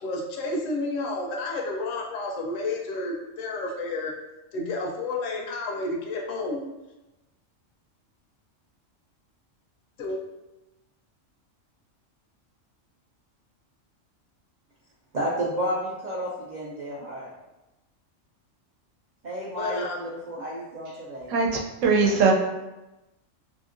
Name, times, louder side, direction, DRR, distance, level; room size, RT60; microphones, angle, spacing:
voice 1, 0.0-4.1 4.5-6.6 10.0-10.2 19.6-20.0, left 2 dB, 85° left, 0 dB, 1.0 m, -30 dB
voice 2, 15.1-17.3 19.2-21.3, equal, 70° right, -6 dB, 0.4 m, -31 dB
voice 3, 21.3-22.3, right 4 dB, 85° right, 0 dB, 0.9 m, -21 dB
2.8 x 2.6 x 2.4 m, 1.0 s
omnidirectional pair, 1.3 m